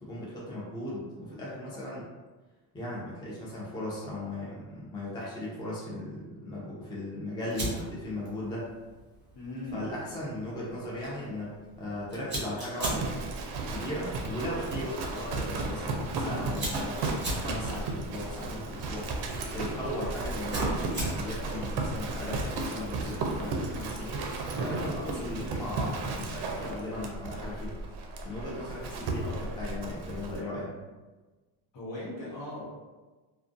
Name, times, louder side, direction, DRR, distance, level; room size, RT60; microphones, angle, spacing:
voice 1, 0.0-2.1 2.7-8.7 9.7-13.1 13.7-19.1 19.5-20.8 21.1-24.2 24.6-27.8 28.2-30.7, left 1 dB, 10° left, -6 dB, 0.4 m, -37 dB
Fire, 7.5-25.7, right 1 dB, 20° right, 0.9 m, -42 dB
voice 2, 9.3-9.9 31.7-32.6, left 2 dB, 60° left, -5 dB, 1.1 m, -39 dB
Livestock farm animals working animals, 12.8-30.4, right 2 dB, 55° right, 0.5 m, -34 dB
2.4 x 2.2 x 2.5 m, 1.2 s
cardioid pair, 125°, 50 cm